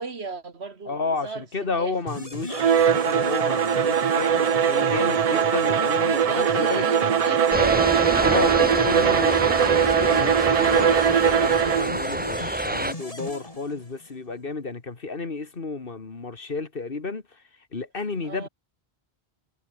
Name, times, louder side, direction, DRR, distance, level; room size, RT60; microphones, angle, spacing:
voice 1, 0.0-2.0 6.3-8.2 18.2-18.5, right 4 dB, 80° right, 2.3 m, -37 dB
voice 2, 0.9-6.9 8.2-17.4 17.7-18.5, left 4 dB, 60° left, 2.1 m, -32 dB
sound 1, 2.1-14.1, left 1 dB, 35° left, 4.2 m, -37 dB
Bowed string instrument, 2.5-12.0, right 8 dB, 45° right, 0.5 m, -21 dB
sound 2, 7.5-12.9, right 1 dB, 10° right, 0.8 m, -27 dB
omnidirectional pair, 1.1 m